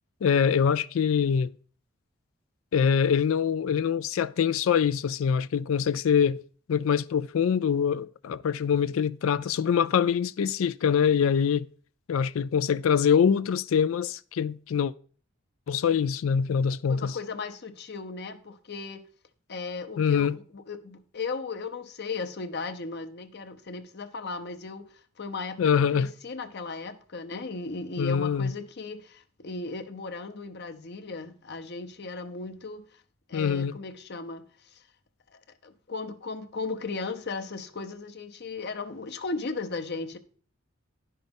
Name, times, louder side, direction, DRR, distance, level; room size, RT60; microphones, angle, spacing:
voice 1, 0.2-1.5 2.7-6.4 6.7-11.7 12.1-14.9 15.7-17.2 20.0-20.3 25.6-26.1 28.0-28.5 33.3-33.7, left 7 dB, 75° left, 0.4 m, -24 dB
voice 2, 16.9-19.1 19.5-33.0 33.3-34.8 35.3-40.2, left 4 dB, 55° left, 0.8 m, -36 dB
10.5 x 5.6 x 5.2 m
head